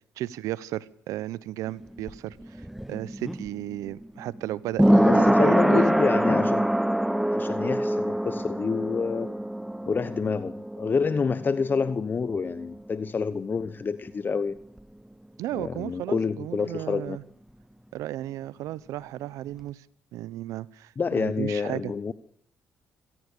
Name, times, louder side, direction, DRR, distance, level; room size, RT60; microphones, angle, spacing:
voice 1, 0.2-5.8 15.4-17.2 17.9-19.9 20.1-21.9, right 14 dB, 80° right, 19 dB, 1.0 m, -34 dB
sound 1, 1.8-13.2 13.5-13.6, right 1 dB, 5° right, 0.9 m, -25 dB
voice 2, 5.0-6.7 7.3-9.3 9.9-14.5 15.5-17.2 21.0-22.1, left 5 dB, 35° left, 14 dB, 1.1 m, -28 dB
26.0 x 17.5 x 6.8 m, 0.67 s
supercardioid pair, 70°, 6 cm